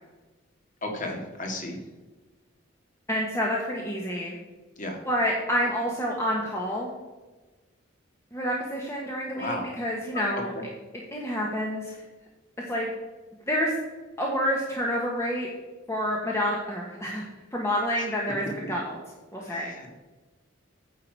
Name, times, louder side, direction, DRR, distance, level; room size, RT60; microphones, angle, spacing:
voice 1, 0.8-1.8 4.8-5.0 9.3-9.7 10.5-10.6 19.4-19.9, left 1 dB, 40° left, 2 dB, 2.0 m, -34 dB
voice 2, 3.1-4.4 5.0-6.9 8.3-10.5 11.1-12.0 12.7-12.9 13.5-13.7 14.2-15.5 15.9-17.2 17.5-19.0 19.3-19.7, equal, 15° left, -2 dB, 1.2 m, -28 dB
9.4 x 7.8 x 4.7 m, 1.2 s
head